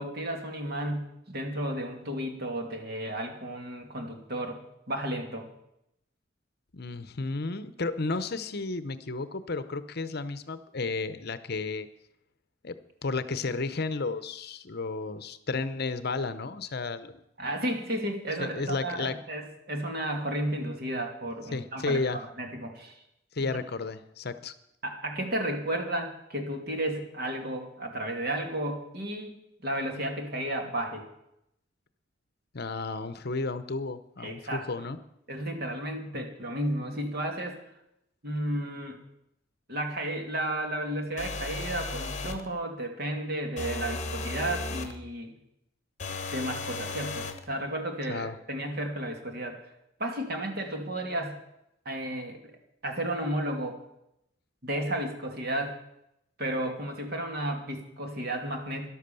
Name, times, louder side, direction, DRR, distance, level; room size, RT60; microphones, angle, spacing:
voice 1, 0.0-4.6 4.9-5.5 17.4-23.0 23.4-23.5 24.8-31.0 34.2-34.9 35.3-37.6 38.2-39.0 39.7-45.3 46.3-49.6 50.0-51.4 51.8-52.4 52.8-53.8 54.6-55.8 56.4-58.9, right 1 dB, 50° right, 3 dB, 2.4 m, -33 dB
voice 2, 6.7-11.9 12.6-12.8 13.0-17.2 18.4-19.2 21.5-22.2 23.3-24.5 32.5-35.0 36.1-36.2 48.1-48.4, left 3 dB, 55° left, 13 dB, 0.8 m, -32 dB
sound 1, 41.2-42.5 43.6-45.0 46.0-47.4, left 3 dB, 35° left, 1.3 m, -35 dB
13.0 x 11.5 x 6.9 m, 0.81 s
head